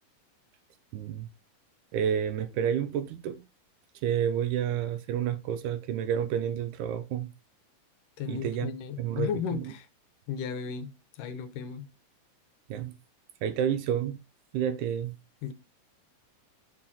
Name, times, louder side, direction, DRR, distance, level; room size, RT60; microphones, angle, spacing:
voice 1, 0.9-1.3 1.9-3.4 4.0-7.3 8.3-8.7 9.0-9.7 12.7-12.9 13.4-14.2 14.5-15.2, right 9 dB, 75° right, 2.0 m, -30 dB
voice 2, 8.2-9.9 10.3-10.9 11.2-11.9 15.4-15.5, left 8 dB, 85° left, 2.4 m, -34 dB
6.8 x 3.7 x 5.8 m
omnidirectional pair, 3.8 m